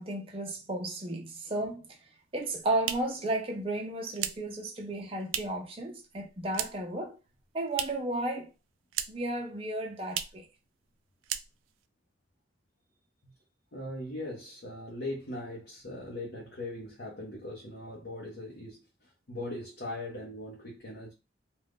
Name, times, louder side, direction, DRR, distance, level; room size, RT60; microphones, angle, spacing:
voice 1, 0.0-1.9 2.3-7.2 7.5-8.5 9.1-10.5, right 1 dB, 30° right, 0.5 m, -33 dB
sound 1, 2.3-5.7 6.0-7.0 7.2-8.2 8.4-9.4 9.6-9.7 10.1-10.5 10.8-11.0 11.2-11.9, right 10 dB, 85° right, 0.3 m, -37 dB
voice 2, 13.7-21.1, left 1 dB, 60° left, 0.7 m, -40 dB
2.5 x 2.2 x 3.4 m
head